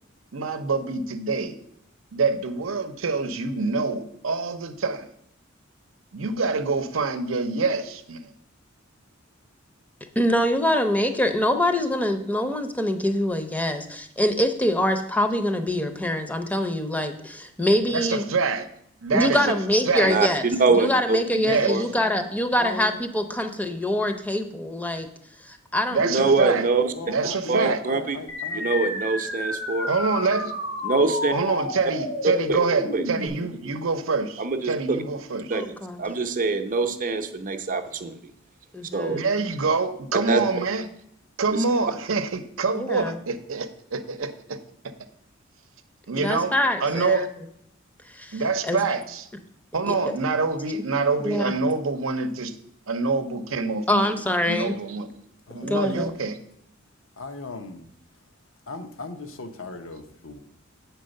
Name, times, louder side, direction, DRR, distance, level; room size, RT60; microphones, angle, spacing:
voice 1, 0.3-1.5 2.1-5.1 6.1-8.3 17.8-18.6 19.0-19.6 19.9-20.2 21.4-21.8 25.9-26.7 27.1-27.8 29.9-30.5 31.3-35.5 39.1-40.9 41.4-44.6 46.1-47.3 48.3-49.3 49.7-52.5 52.9-54.1 54.5-55.1 55.5-56.4, right 4 dB, 80° right, 9 dB, 0.7 m, -26 dB
voice 2, 10.2-18.2 19.1-20.4 20.7-25.1 25.4-26.3 35.5-36.0 38.7-39.3 42.7-43.2 46.2-47.3 48.1-48.8 49.9-50.0 51.2-51.5 53.9-54.8 55.6-56.1, left 1 dB, 10° left, 7 dB, 0.6 m, -24 dB
voice 3, 20.0-21.2 21.7-21.9 26.0-26.9 27.5-28.2 28.6-29.9 30.8-31.3 32.5-32.6 32.9-33.0 34.4-35.0 35.5-35.6 36.0-38.2 38.9-39.2 40.3-40.4 41.5-41.6, right 3 dB, 40° right, 8 dB, 0.7 m, -24 dB
voice 4, 21.9-22.3 22.6-23.0 26.9-28.6 55.5-56.1 57.2-57.9 58.7-60.4, left 3 dB, 75° left, 8 dB, 0.8 m, -38 dB
sound 1, 28.3-33.3, left 2 dB, 90° left, 2.1 m, -31 dB
7.8 x 4.6 x 6.5 m, 0.74 s
head